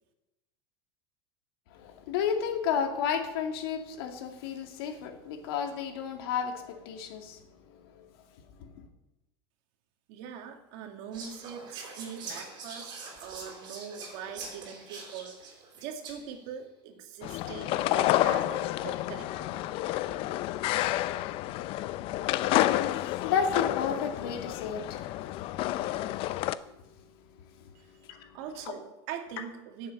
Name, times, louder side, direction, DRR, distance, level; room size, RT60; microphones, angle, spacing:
voice 1, 1.7-7.4 8.6-8.7 22.7-25.1 28.1-28.4 28.7-28.8, left 7 dB, 75° left, 5 dB, 2.2 m, -32 dB
voice 2, 10.1-13.0 13.2-19.5 27.7-27.9 28.3-29.9, right 7 dB, 60° right, 5 dB, 2.2 m, -42 dB
Whispering, 11.1-16.4, right 4 dB, 35° right, 4.6 m, -44 dB
sound 1, 17.2-26.5, left 15 dB, 45° left, 0.5 m, -29 dB
10.5 x 7.9 x 8.9 m, 0.96 s
supercardioid pair, 135°, 13 cm